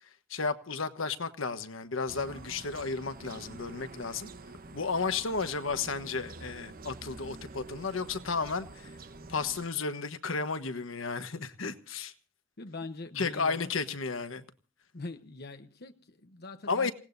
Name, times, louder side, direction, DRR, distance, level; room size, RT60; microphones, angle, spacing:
voice 1, 0.0-4.3 4.7-9.0 9.3-12.1 13.2-14.4 16.7-16.9, left 4 dB, 85° left, 1.3 m, -33 dB
sound 1, 2.1-9.7, right 3 dB, 45° right, 1.0 m, -47 dB
voice 2, 12.6-13.7 14.9-16.9, left 3 dB, 55° left, 1.0 m, -42 dB
28.0 x 17.5 x 2.6 m
head